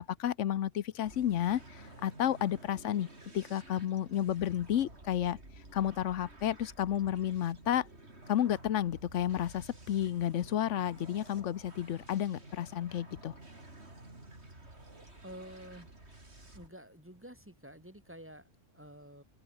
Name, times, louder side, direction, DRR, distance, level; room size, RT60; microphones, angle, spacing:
voice 1, 0.0-3.1 3.3-5.4 5.7-7.9 8.3-13.3, left 11 dB, 75° left, 1.1 m, -31 dB
sound 1, 1.0-16.7, right 2 dB, 60° right, 5.5 m, -52 dB
voice 2, 15.2-15.9 16.5-19.2, equal, 10° right, 4.6 m, -50 dB
open air
omnidirectional pair, 1.3 m